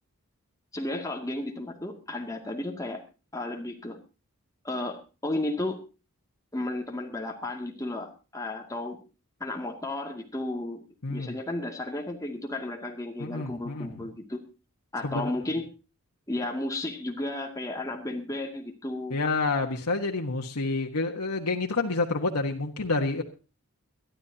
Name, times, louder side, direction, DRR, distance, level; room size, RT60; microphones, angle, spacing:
voice 1, 0.7-3.0 3.3-4.0 4.6-5.8 6.5-9.0 9.4-10.8 11.1-14.4 14.9-15.7 16.3-19.2, left 2 dB, 15° left, 2 dB, 2.3 m, -33 dB
voice 2, 11.0-11.3 13.2-13.9 15.0-15.3 19.1-23.2, left 3 dB, 85° left, 2 dB, 1.4 m, -28 dB
23.0 x 12.0 x 2.8 m, 0.31 s
head